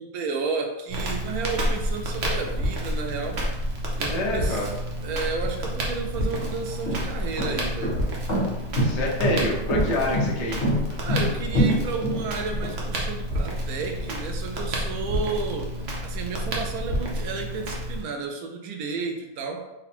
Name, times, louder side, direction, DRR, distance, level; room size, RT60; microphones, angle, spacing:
voice 1, 0.0-3.4 4.0-4.7 5.0-8.0 11.0-19.7, right 4 dB, 85° right, 4 dB, 1.1 m, -32 dB
Crackle, 0.9-18.0, equal, 60° right, 1.1 m, -29 dB
voice 2, 4.1-4.7 8.8-10.6, left 1 dB, 35° left, -2 dB, 0.6 m, -26 dB
sound 1, 5.4-5.5 6.2-12.7, equal, 60° left, 1.4 m, -25 dB
4.0 x 2.2 x 4.2 m, 0.99 s
omnidirectional pair, 1.5 m